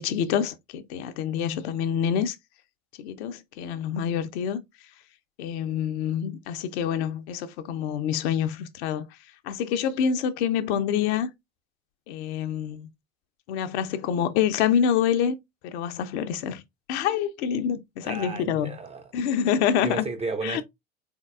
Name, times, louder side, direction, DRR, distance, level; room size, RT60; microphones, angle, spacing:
voice 1, 0.0-2.4 3.0-4.6 5.4-9.1 9.4-11.3 12.1-12.9 13.5-15.4 15.6-16.6 16.9-18.8 19.1-20.1 20.4-20.6, left 8 dB, 50° left, 0.7 m, -26 dB
voice 2, 18.0-19.1 19.8-20.6, right 3 dB, 15° right, 0.5 m, -33 dB
3.9 x 3.6 x 2.4 m
figure-of-eight pair, 75°, 42 cm